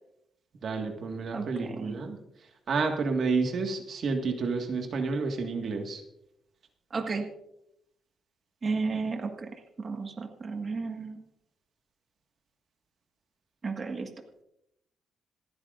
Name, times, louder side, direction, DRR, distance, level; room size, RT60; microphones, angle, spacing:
voice 1, 0.6-6.0, right 4 dB, 60° right, 4 dB, 1.7 m, -30 dB
voice 2, 1.3-2.0 6.9-7.3 8.6-11.2 13.6-14.1, right 4 dB, 40° right, 4 dB, 1.6 m, -33 dB
27.5 x 9.6 x 2.5 m, 0.79 s
cardioid pair, 105°, 0 cm